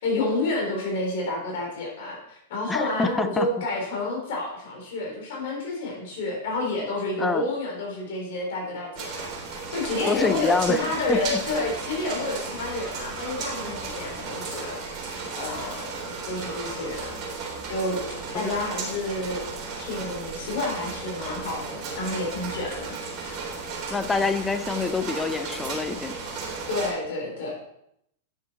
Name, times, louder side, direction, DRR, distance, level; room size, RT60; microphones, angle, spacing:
voice 1, 0.0-9.3 9.5-15.1 15.4-15.9 16.2-17.1 17.6-19.4 19.8-23.4 26.7-27.5, left 2 dB, 60° left, -1 dB, 3.7 m, -29 dB
voice 2, 2.7-3.5 7.2-7.4 10.1-10.8 11.1-11.4 18.3-18.6 23.9-26.2, left 4 dB, 15° left, 10 dB, 0.8 m, -26 dB
sound 1, 8.9-26.9, right 4 dB, 40° right, 3.6 m, -34 dB
11.0 x 6.9 x 4.1 m, 0.75 s
figure-of-eight pair, 95°, 0 cm